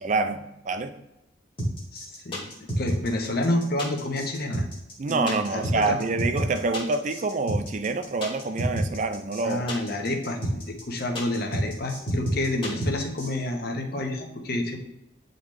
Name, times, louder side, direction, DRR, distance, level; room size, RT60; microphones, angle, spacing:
voice 1, 0.0-0.9 5.0-9.7, right 3 dB, 40° right, 8 dB, 0.4 m, -27 dB
sound 1, 1.6-13.3, right 1 dB, 30° left, 1.5 m, -28 dB
voice 2, 1.9-4.6 5.1-6.0 9.4-14.8, left 1 dB, 50° left, 3 dB, 0.9 m, -29 dB
8.7 x 3.9 x 3.1 m, 0.88 s
head